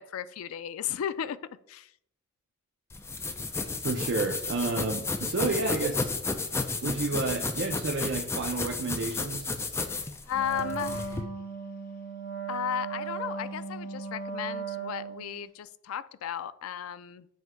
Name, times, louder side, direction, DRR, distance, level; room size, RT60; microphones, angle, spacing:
voice 1, 0.0-1.4 1.7-1.9 9.8-11.3 12.5-17.3, left 9 dB, 90° left, 15 dB, 0.3 m, -35 dB
sound 1, 2.9-11.2, left 3 dB, 10° left, 0.3 m, -33 dB
voice 2, 3.8-6.1 6.8-9.6, right 3 dB, 60° right, 2 dB, 0.5 m, -30 dB
Wind instrument woodwind instrument, 10.3-15.4, right 5 dB, 45° left, 1.1 m, -37 dB
7.9 x 2.7 x 4.5 m, 0.72 s
head